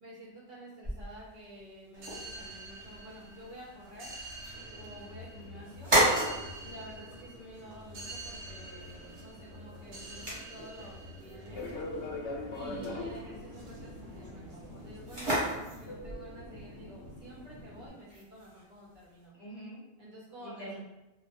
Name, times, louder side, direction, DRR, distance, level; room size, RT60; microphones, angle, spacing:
voice 1, 0.0-4.2 4.8-5.9 6.6-11.7 12.5-19.3 20.0-20.7, equal, 55° right, -7 dB, 0.7 m, -50 dB
sound 1, 0.8-19.3, right 1 dB, 30° right, 0.9 m, -36 dB
sound 2, 1.9-15.4, right 1 dB, 85° right, 0.9 m, -47 dB
Fixed-wing aircraft airplane, 11.5-17.9, left 2 dB, 80° left, 0.9 m, -42 dB
voice 2, 12.6-13.0 19.3-19.8 20.4-20.8, right 2 dB, 45° left, -7 dB, 0.8 m, -45 dB
2.1 x 2.1 x 2.8 m, 1.0 s
omnidirectional pair, 1.2 m